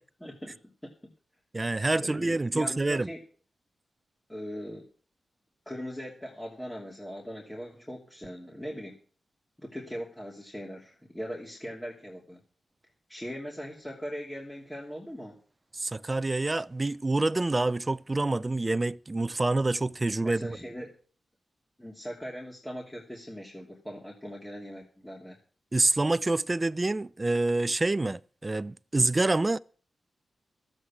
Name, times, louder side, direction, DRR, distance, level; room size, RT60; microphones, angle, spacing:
voice 1, 0.2-0.6 0.8-0.9 2.0-3.2 4.3-4.8 5.7-9.0 9.6-12.4 13.1-15.4 20.2-21.0 21.8-25.4, equal, 5° left, 2.8 m, -40 dB
voice 2, 1.5-3.1 15.7-20.6 25.7-29.6, right 2 dB, 25° right, 0.5 m, -27 dB
13.0 x 8.1 x 7.4 m
cardioid pair, 80°, 0 cm